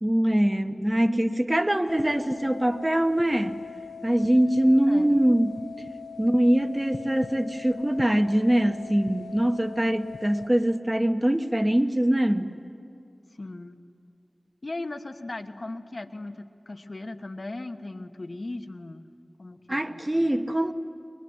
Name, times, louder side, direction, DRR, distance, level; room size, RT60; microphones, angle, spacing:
voice 1, 0.0-3.7 4.0-5.6 6.2-12.5 19.7-20.7, right 1 dB, 20° right, 7 dB, 1.1 m, -23 dB
sound 1, 1.9-10.5, left 6 dB, 80° left, 0.9 m, -41 dB
voice 2, 4.7-5.2 13.4-13.8 14.6-20.3, left 2 dB, 55° left, 6 dB, 1.2 m, -38 dB
23.5 x 22.5 x 9.6 m, 2.4 s
wide cardioid pair, 60°, 0 cm